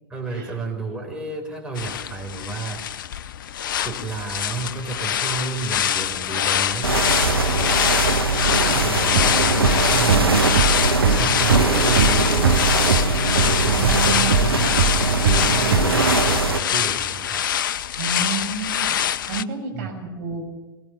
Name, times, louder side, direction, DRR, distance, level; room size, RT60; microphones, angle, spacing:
voice 1, 0.1-2.9 3.8-10.4 11.1-13.1 13.4-17.4 19.7-19.9, right 3 dB, 5° right, 0 dB, 4.9 m, -32 dB
sound 1, 1.8-19.4, left 10 dB, 60° left, 0.6 m, -24 dB
sound 2, 6.8-16.6, right 3 dB, 85° right, 1.5 m, -22 dB
sound 3, 9.1-16.7, right 5 dB, 70° right, 1.8 m, -23 dB
voice 2, 18.0-19.0 19.3-20.4, right 3 dB, 50° right, 2 dB, 7.5 m, -30 dB
22.0 x 18.0 x 7.2 m, 1.1 s
figure-of-eight pair, 100°, 12 cm